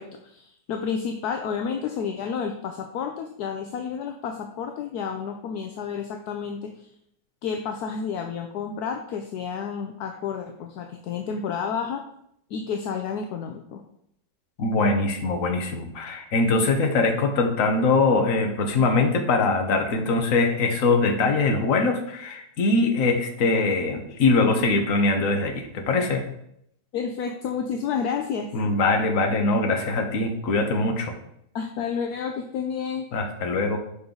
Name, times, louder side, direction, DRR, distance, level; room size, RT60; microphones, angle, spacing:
voice 1, 0.0-6.9 7.4-12.0 12.5-13.8 26.9-28.5 31.5-33.1, left 6 dB, 70° left, 4 dB, 1.1 m, -30 dB
voice 2, 14.6-26.3 28.5-31.1 33.1-33.8, left 3 dB, 55° left, 4 dB, 1.3 m, -22 dB
6.9 x 5.5 x 3.8 m, 0.73 s
omnidirectional pair, 1.8 m